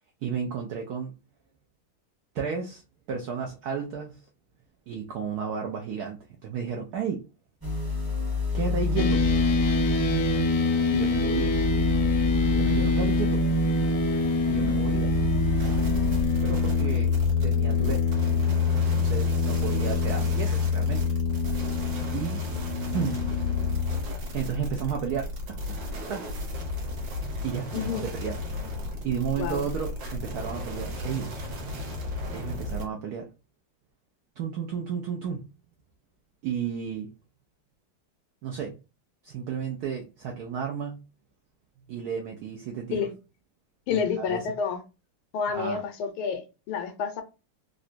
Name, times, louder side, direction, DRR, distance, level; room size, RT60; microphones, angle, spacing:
voice 1, 0.2-1.2 2.3-2.8 3.1-4.2 4.9-7.2 8.5-9.2 10.9-11.5 12.5-13.4 14.5-15.1 16.4-17.1 17.4-18.0 18.7-21.1 22.1-22.4 22.9-23.2 24.3-25.8 26.1-26.2 27.4-28.4 29.0-31.4 32.3-33.3 34.4-35.5 36.4-37.1 38.4-38.7 39.2-41.1 41.9-43.1 43.9-44.5 45.5-45.8, right 7 dB, 80° right, 0.8 m, -33 dB
sound 1, 7.6-16.2, left 4 dB, 20° right, 0.6 m, -29 dB
sound 2, 9.0-24.0, left 3 dB, 70° left, 1.1 m, -25 dB
sound 3, 15.6-32.9, left 1 dB, 55° right, 1.6 m, -34 dB
voice 2, 27.7-28.0 29.3-29.6 42.9-43.1 43.9-44.8 45.3-47.2, left 6 dB, 85° left, 1.5 m, -29 dB
3.8 x 2.2 x 2.5 m
omnidirectional pair, 2.3 m